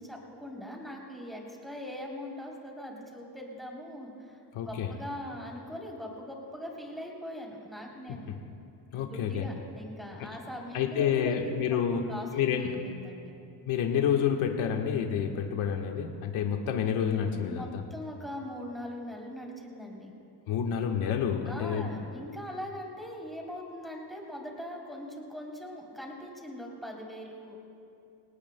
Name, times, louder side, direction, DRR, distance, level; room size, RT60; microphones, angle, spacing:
voice 1, 0.0-4.4 4.6-8.3 9.0-11.6 11.9-12.3 12.8-13.4 17.4-20.1 21.5-27.6, equal, ahead, -2 dB, 3.3 m, -41 dB
voice 2, 4.5-4.9 8.9-9.5 10.7-12.1 12.3-12.8 13.7-17.8 20.5-21.9, left 8 dB, 80° left, 2 dB, 1.5 m, -28 dB
26.5 x 18.5 x 2.2 m, 2.7 s
cardioid pair, 115°, 48 cm